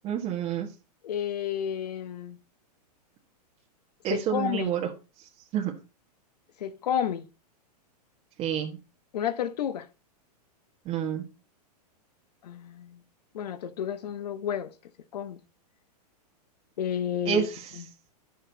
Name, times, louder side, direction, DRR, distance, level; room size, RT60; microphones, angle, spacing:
voice 1, 0.0-0.7 4.0-4.9 5.2-5.7 8.4-8.8 10.8-11.2 17.2-17.7, right 9 dB, 25° right, 1.6 m, -29 dB
voice 2, 1.0-2.4 4.1-4.7 6.6-7.3 9.1-9.9 12.4-13.0 13.3-14.7 15.1-15.4 16.8-17.5 17.8-17.9, left 9 dB, 75° left, 1.3 m, -31 dB
11.5 x 6.6 x 4.1 m
supercardioid pair, 160°, 21 cm